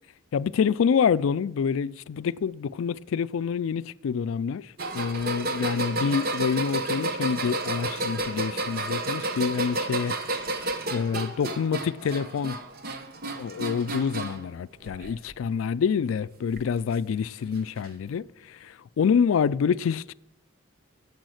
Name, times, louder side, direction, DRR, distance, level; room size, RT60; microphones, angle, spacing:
voice 1, 0.3-4.7 4.9-12.6 13.3-20.1, left 6 dB, 80° left, 0.3 m, -27 dB
sound 1, 4.8-14.5 14.8-15.4 16.6-16.7 17.8-17.9, right 2 dB, 45° right, 0.9 m, -31 dB
10.5 x 8.4 x 6.4 m
head